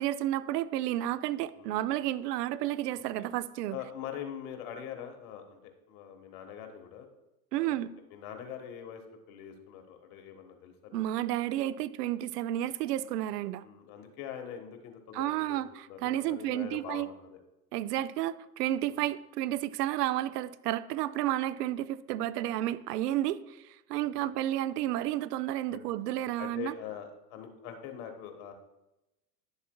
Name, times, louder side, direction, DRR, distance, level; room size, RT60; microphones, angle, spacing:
voice 1, 0.0-3.8 7.5-7.9 10.9-13.6 15.1-17.1 17.7-26.7, right 13 dB, 75° right, 16 dB, 0.5 m, -31 dB
voice 2, 3.7-5.6 5.9-7.1 7.5-9.0 9.3-11.0 13.6-15.6 15.9-17.4 18.9-19.0 24.0-24.1 25.7-25.8 26.4-28.5, left 9 dB, 55° left, 5 dB, 1.4 m, -43 dB
10.5 x 7.1 x 2.2 m, 0.95 s
hypercardioid pair, 110°, 49 cm